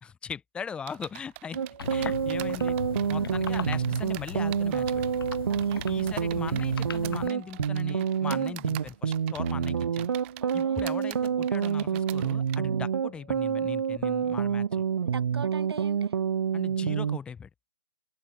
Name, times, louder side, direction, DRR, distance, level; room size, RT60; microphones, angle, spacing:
voice 1, 0.0-1.6 1.9-2.8 3.1-4.9 5.9-10.1 10.5-14.9 16.5-17.5, left 6 dB, 10° left, 1.6 m, -39 dB
sound 1, 0.9-12.6, right 22 dB, 25° right, 7.1 m, -45 dB
sound 2, 1.6-17.2, right 7 dB, 55° right, 1.1 m, -28 dB
sound 3, 1.8-7.3, left 6 dB, 60° left, 1.0 m, -37 dB
voice 2, 5.5-5.9 8.3-8.6 10.4-10.8 12.7-12.8 15.0-16.1, right 5 dB, 70° right, 1.4 m, -41 dB
figure-of-eight pair, 150°, 13 cm